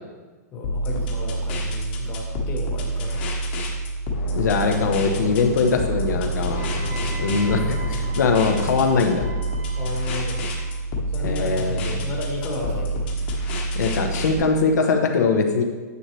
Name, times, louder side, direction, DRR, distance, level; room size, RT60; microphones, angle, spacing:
voice 1, 0.5-3.2 4.6-4.8 9.7-10.4 11.1-13.1, left 3 dB, 20° left, -2 dB, 1.3 m, -33 dB
sound 1, 0.6-14.3, right 1 dB, 35° left, 1.3 m, -27 dB
sound 2, 4.1-9.1, left 4 dB, 60° left, 2.0 m, -34 dB
voice 2, 4.3-6.7 7.2-9.3 11.2-11.9 13.7-15.6, left 4 dB, 80° left, 3 dB, 1.1 m, -21 dB
Wind instrument woodwind instrument, 6.6-10.7, right 5 dB, 15° right, 0.9 m, -41 dB
9.7 x 7.7 x 3.2 m, 1.3 s
hypercardioid pair, 175°, 9 cm